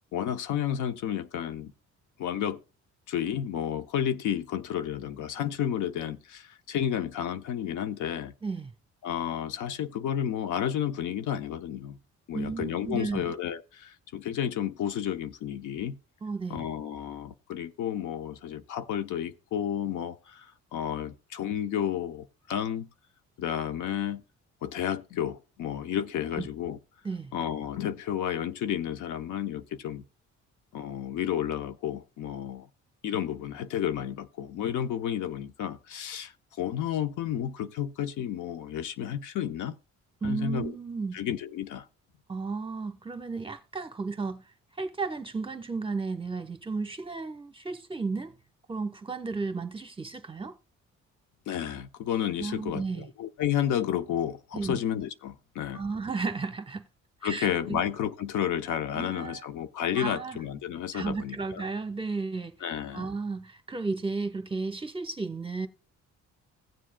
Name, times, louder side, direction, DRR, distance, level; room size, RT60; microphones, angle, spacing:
voice 1, 0.1-1.7 2.2-2.6 3.1-8.3 9.0-12.0 12.3-16.0 16.5-22.9 23.4-24.2 24.6-26.8 27.3-30.0 30.7-32.7 33.0-39.8 40.2-40.7 41.1-41.9 51.5-55.8 57.2-61.6 62.6-63.1, left 10 dB, 80° left, 0.8 m, -31 dB
voice 2, 8.4-8.7 12.3-13.3 16.2-16.6 26.4-26.5 27.0-27.3 40.2-41.2 42.3-44.4 44.8-48.3 48.7-50.6 52.4-53.1 54.5-54.8 55.7-56.8 57.2-57.8 58.9-59.4 59.9-60.4 60.9-62.5 62.9-65.7, right 4 dB, 15° right, 0.9 m, -33 dB
16.5 x 7.4 x 2.2 m
cardioid pair, 90°, 30 cm